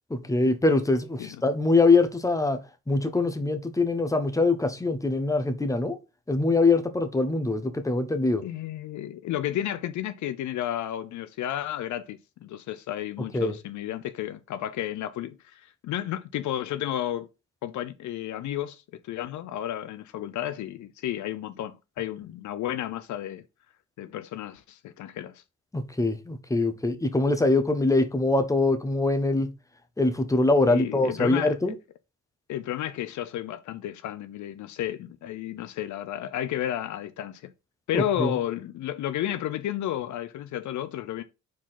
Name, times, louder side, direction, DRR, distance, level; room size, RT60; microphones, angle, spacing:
voice 1, 0.1-2.6 2.9-6.0 6.3-8.4 13.3-13.5 25.7-29.5 30.0-31.7 37.9-38.3, left 3 dB, 10° left, 1.2 m, -23 dB
voice 2, 8.4-17.3 17.6-23.4 24.0-25.4 30.7-31.8 32.5-37.5 37.9-41.2, left 12 dB, 75° left, 0.6 m, -32 dB
4.7 x 4.6 x 5.7 m
cardioid pair, 90°, 30 cm